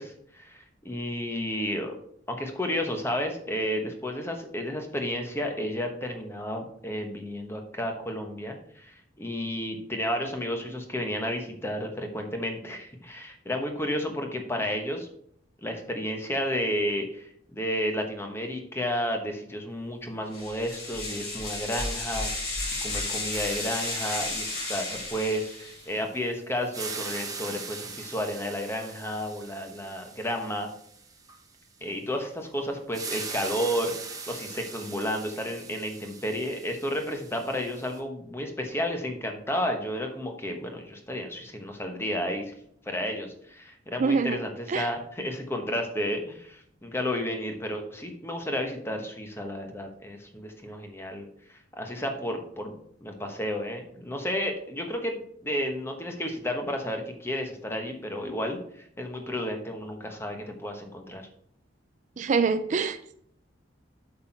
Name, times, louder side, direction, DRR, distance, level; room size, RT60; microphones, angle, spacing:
voice 1, 0.0-1.9 2.3-15.1 15.6-22.5 22.8-30.7 31.8-42.5 42.9-61.3, equal, 15° left, 4 dB, 1.1 m, -32 dB
sound 1, 20.3-25.9, left 2 dB, 55° left, 3.2 m, -33 dB
sound 2, 23.3-26.2 26.6-31.4 32.9-38.0, right 5 dB, 20° right, 1.0 m, -41 dB
voice 2, 44.0-44.4 44.7-44.9 62.2-63.1, right 5 dB, 40° right, 11 dB, 0.4 m, -25 dB
8.3 x 5.9 x 4.6 m, 0.68 s
head